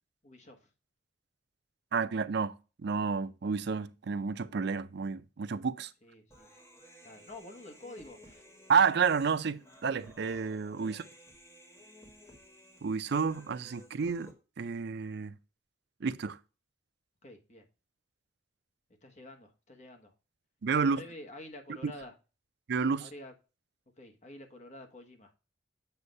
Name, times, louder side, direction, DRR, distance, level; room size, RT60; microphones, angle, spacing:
voice 1, 0.2-0.7 6.0-6.5 7.0-8.4 10.8-11.0 17.2-17.6 19.0-20.1 20.8-22.1 23.0-23.3 24.0-25.3, left 1 dB, 40° left, 1.3 m, -49 dB
voice 2, 1.9-5.9 8.7-11.0 12.8-15.4 16.0-16.4 20.6-21.0 21.8-21.9 22.7-23.1, right 5 dB, 65° right, 0.5 m, -30 dB
Human voice, 6.3-14.3, equal, 15° left, 1.6 m, -56 dB
8.0 x 2.7 x 5.2 m
head